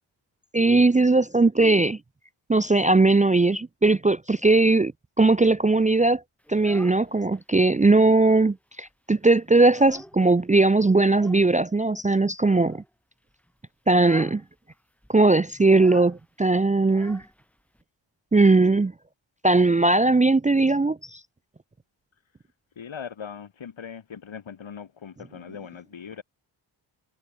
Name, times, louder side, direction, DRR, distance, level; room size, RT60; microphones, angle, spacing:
voice 1, 0.5-2.0 2.5-4.9 5.2-6.2 6.5-12.8 13.9-14.4 15.1-17.2 18.3-18.9 19.4-21.2, right 3 dB, 15° right, 0.6 m, -19 dB
Child speech kid speaking, 6.4-7.4 7.8-8.6 8.9-9.0 9.3-10.4 11.0-11.5 12.4-12.9 13.3-13.5 13.9-14.4 14.7-14.8 15.0-17.8, equal, 5° left, 5.1 m, -47 dB
voice 2, 22.8-26.2, left 7 dB, 65° left, 4.8 m, -40 dB
cardioid pair, 70°, 49 cm